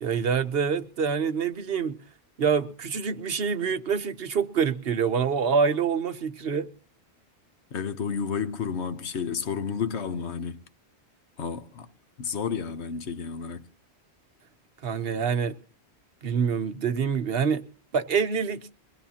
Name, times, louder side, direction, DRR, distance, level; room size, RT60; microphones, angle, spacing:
voice 1, 0.0-2.0 2.4-6.7 14.8-15.5 16.2-17.6 17.9-18.7, right 6 dB, 60° right, 1.1 m, -26 dB
voice 2, 7.7-10.6 11.4-11.9 12.2-13.7, left 6 dB, 75° left, 1.2 m, -31 dB
23.0 x 18.0 x 2.8 m
omnidirectional pair, 1.1 m